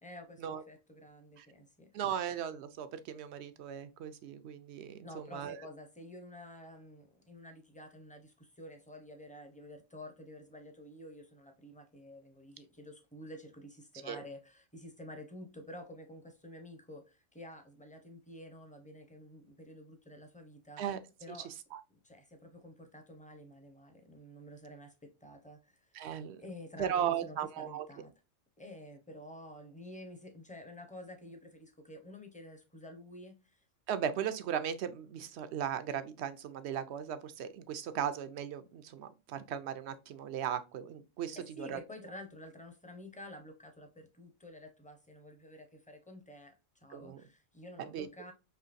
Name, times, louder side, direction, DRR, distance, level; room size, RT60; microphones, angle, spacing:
voice 1, 0.0-1.9 5.0-20.8 21.2-21.5 21.9-25.8 26.4-28.1 28.6-33.6 41.3-46.5 46.8-48.3, left 1 dB, 10° left, 0.6 m, -50 dB
voice 2, 1.9-5.6 14.1-14.2 20.8-21.0 21.3-21.4 21.7-21.8 25.9-26.4 26.8-27.9 33.9-41.8 46.9-47.2 47.9-48.1, right 9 dB, 70° right, 0.8 m, -37 dB
5.6 x 3.1 x 2.5 m
omnidirectional pair, 1.3 m